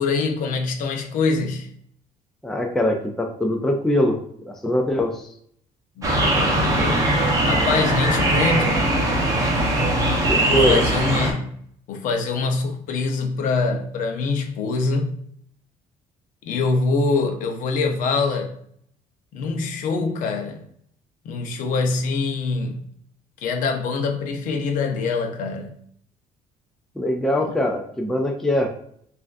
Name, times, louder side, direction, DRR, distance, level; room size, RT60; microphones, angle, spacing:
voice 1, 0.0-1.7 6.0-7.0 7.4-8.8 10.4-11.6 11.9-15.2 16.4-18.6 19.3-20.6 21.2-22.9 23.4-25.7 27.4-27.5, left 4 dB, 65° left, 0.7 m, -24 dB
voice 2, 2.4-4.2 4.5-5.3 10.3-10.8 27.0-28.7, left 1 dB, 5° left, 0.3 m, -22 dB
sound 1, 6.0-11.3, right 1 dB, 20° right, 0.8 m, -20 dB
6.1 x 2.5 x 2.5 m
cardioid pair, 170°, 15 cm